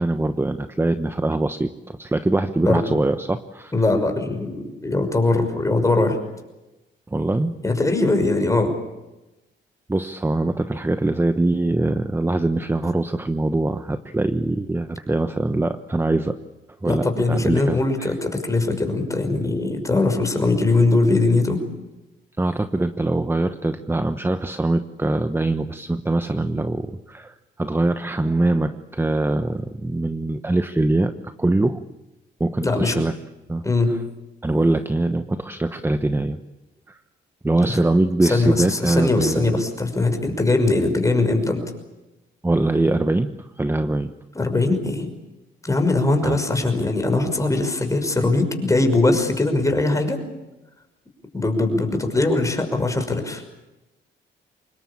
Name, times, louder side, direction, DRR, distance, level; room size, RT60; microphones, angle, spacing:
voice 1, 0.0-3.7 7.1-7.5 9.9-16.4 16.8-18.1 22.4-31.1 31.4-31.8 32.4-33.1 33.5-33.6 34.4-36.4 36.9-37.0 37.4-39.6 42.4-44.1 46.2-46.4, right 2 dB, 10° right, 10 dB, 1.1 m, -23 dB
voice 2, 3.7-6.2 7.6-8.7 16.8-21.6 32.6-32.9 33.6-34.0 37.6-37.8 38.3-41.6 44.3-45.1 45.6-50.2 51.3-53.4, left 2 dB, 15° left, 5 dB, 5.9 m, -21 dB
25.5 x 21.0 x 8.7 m, 1.0 s
cardioid pair, 90°, 20 cm